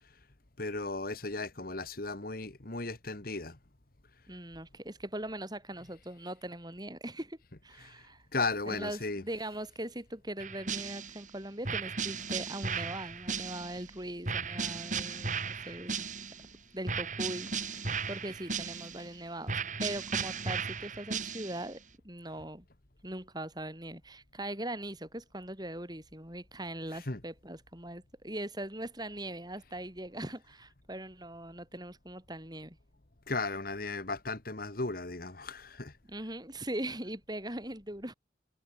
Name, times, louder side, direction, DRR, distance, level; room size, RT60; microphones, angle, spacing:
voice 1, 0.6-3.6 7.8-8.1 8.3-9.2 17.9-18.0 26.9-27.2 33.3-35.9, left 3 dB, 50° left, 1.7 m, -36 dB
voice 2, 4.3-7.4 7.6-8.2 8.7-16.1 16.7-22.7 23.0-32.8 36.1-38.1, right 1 dB, 20° right, 7.3 m, -41 dB
sound 1, 10.4-11.3 11.6-13.9 14.3-16.5 16.9-19.1 19.5-21.7, right 5 dB, 40° right, 6.8 m, -36 dB
head